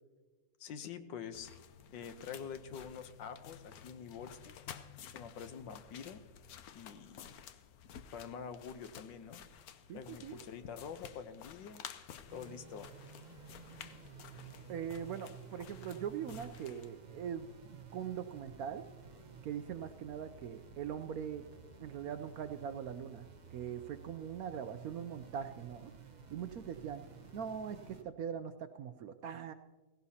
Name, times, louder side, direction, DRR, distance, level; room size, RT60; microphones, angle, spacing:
voice 1, 0.6-1.5 1.9-4.5 5.0-6.2 6.7-7.3 8.1-9.4 9.9-11.8 12.3-12.9, left 7 dB, 85° left, 10 dB, 1.5 m, -46 dB
sound 1, 1.3-16.9, left 8 dB, 65° left, 1.0 m, -53 dB
voice 2, 9.9-10.4 14.7-18.8 19.4-21.4 21.8-25.9 26.3-27.0 27.3-29.5, right 8 dB, 70° right, 9 dB, 0.9 m, -42 dB
sound 2, 12.3-28.0, right 5 dB, 40° right, 0.6 m, -54 dB
17.5 x 16.5 x 2.8 m, 1.3 s
omnidirectional pair, 1.9 m